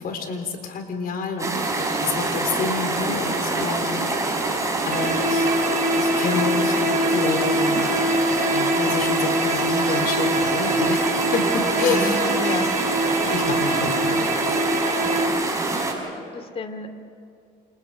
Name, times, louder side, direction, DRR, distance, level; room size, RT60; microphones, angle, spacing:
voice 1, 0.0-4.0 4.9-5.5 6.0-7.9 8.5-12.2 13.2-14.2, left 5 dB, 60° left, 5 dB, 4.2 m, -28 dB
sound 1, 1.4-15.9, right 2 dB, 20° right, 5.4 m, -25 dB
sound 2, 4.9-15.3, right 1 dB, 45° right, 3.1 m, -24 dB
voice 2, 11.3-12.7 16.1-16.9, left 1 dB, 35° left, 8 dB, 2.5 m, -32 dB
28.5 x 28.5 x 5.1 m, 2.5 s
cardioid pair, 110°, 17 cm